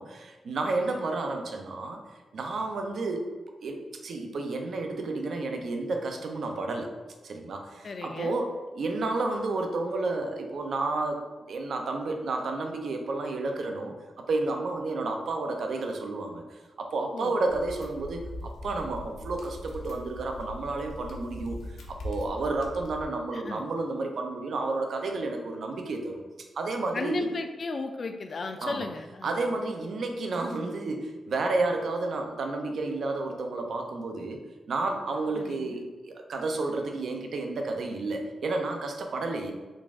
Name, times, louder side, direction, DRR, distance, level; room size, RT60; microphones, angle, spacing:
voice 1, 0.0-2.0 2.3-3.2 3.6-6.9 7.2-21.6 21.9-26.2 26.5-27.3 28.6-28.9 29.2-34.4 34.7-39.5, right 3 dB, 65° right, 3 dB, 0.5 m, -31 dB
voice 2, 7.8-8.3 17.1-17.4 23.3-23.6 26.9-29.4 35.4-35.8, left 3 dB, 45° left, 6 dB, 0.4 m, -35 dB
sound 1, 17.5-23.1, left 1 dB, 80° left, 0.7 m, -41 dB
3.9 x 2.5 x 3.5 m, 1.2 s
cardioid pair, 110°, 0 cm